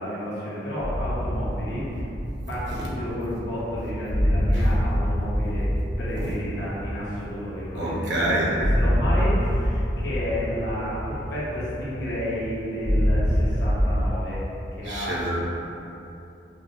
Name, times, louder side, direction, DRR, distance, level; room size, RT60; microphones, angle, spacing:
voice 1, 0.0-2.0 2.5-5.7 6.0-14.4 14.7-15.2, equal, 75° left, -9 dB, 1.2 m, -31 dB
sound 1, 0.8-14.0, equal, 60° left, 1.4 m, -26 dB
voice 2, 7.7-8.5 14.9-15.4, right 1 dB, 75° right, -5 dB, 0.9 m, -26 dB
6.0 x 2.3 x 2.6 m, 2.9 s
head